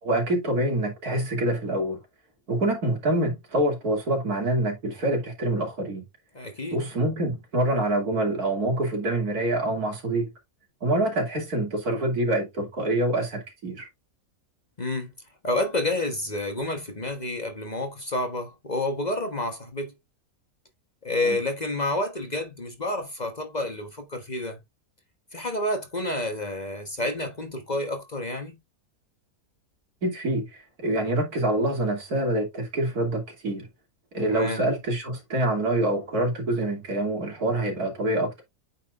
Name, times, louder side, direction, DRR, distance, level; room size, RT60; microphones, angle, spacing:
voice 1, 0.0-2.0 2.5-6.0 6.7-10.3 10.8-13.9 21.2-21.4 30.0-33.7 34.1-38.4, right 1 dB, 80° right, 3.1 m, -26 dB
voice 2, 6.3-6.8 14.8-15.1 15.4-19.9 21.0-24.6 25.3-28.5 34.3-34.7, left 1 dB, 30° left, 1.2 m, -29 dB
8.6 x 5.8 x 2.5 m
omnidirectional pair, 1.6 m